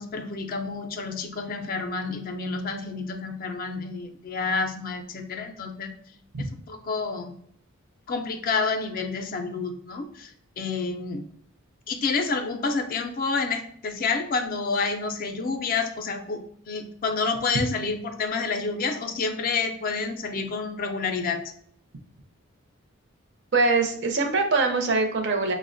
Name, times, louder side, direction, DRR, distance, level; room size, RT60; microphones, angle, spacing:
voice 1, 0.0-5.9 6.7-7.3 8.1-11.2 11.9-21.4, left 4 dB, 45° left, 6 dB, 0.4 m, -29 dB
voice 2, 23.5-25.5, right 3 dB, 60° right, 5 dB, 0.5 m, -23 dB
5.4 x 2.1 x 2.5 m, 0.64 s
head